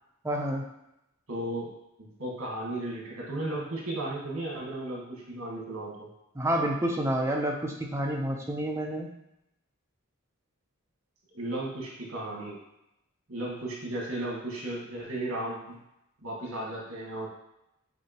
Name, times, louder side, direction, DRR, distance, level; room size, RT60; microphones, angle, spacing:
voice 1, 0.2-0.7 6.3-9.1, right 1 dB, 15° right, 1 dB, 0.6 m, -29 dB
voice 2, 1.3-1.7 2.0-6.1 11.3-12.6 13.3-15.8 16.2-17.3, right 1 dB, 75° right, -3 dB, 1.5 m, -35 dB
6.2 x 2.8 x 2.9 m, 0.85 s
head